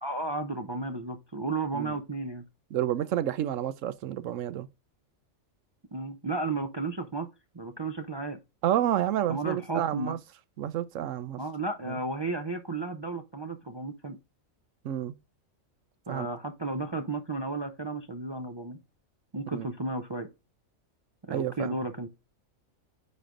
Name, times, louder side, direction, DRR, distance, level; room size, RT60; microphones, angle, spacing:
voice 1, 0.0-2.4 5.9-7.3 7.5-8.4 9.3-10.2 11.4-14.2 16.1-18.8 19.3-20.3 21.3-22.1, right 3 dB, 45° right, 0.3 m, -33 dB
voice 2, 2.7-4.7 8.6-10.2 10.6-11.4 11.8-12.0 14.8-15.1 16.1-16.3 19.5-19.7 21.3-21.8, right 11 dB, 75° right, 1.0 m, -29 dB
9.4 x 3.3 x 3.7 m
omnidirectional pair, 1.4 m